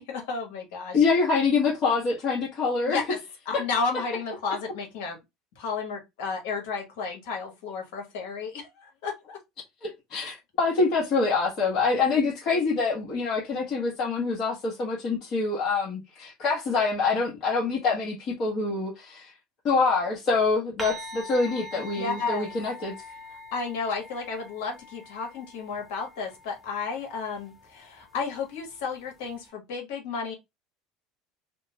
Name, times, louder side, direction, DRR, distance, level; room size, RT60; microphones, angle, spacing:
voice 1, 0.0-1.0 2.8-3.2 3.4-5.2 5.6-9.4 21.7-22.5 23.3-30.3, left 4 dB, 75° left, 1.1 m, -32 dB
voice 2, 0.9-3.0 3.5-3.6 9.8-19.3 19.6-22.9, left 4 dB, 50° left, 1.1 m, -25 dB
sound 1, 20.8-29.5, equal, 15° right, 0.7 m, -44 dB
2.8 x 2.0 x 2.8 m
hypercardioid pair, 80°, 0 cm